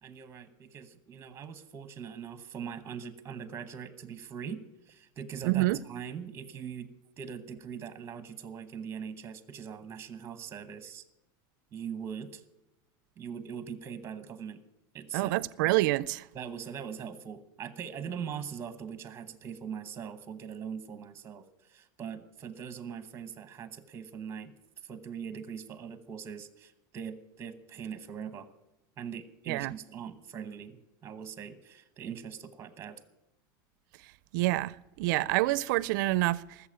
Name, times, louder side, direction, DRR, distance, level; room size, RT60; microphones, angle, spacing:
voice 1, 0.0-6.9 7.2-11.0 11.7-12.4 13.2-14.6 14.9-15.3 16.3-24.5 24.8-28.5 29.0-33.0, right 7 dB, 25° right, 0.9 m, -41 dB
voice 2, 5.4-5.8 15.1-16.3 29.5-29.7 34.3-36.4, right 19 dB, 70° right, 0.4 m, -27 dB
14.0 x 7.0 x 8.7 m
supercardioid pair, 145°, 11 cm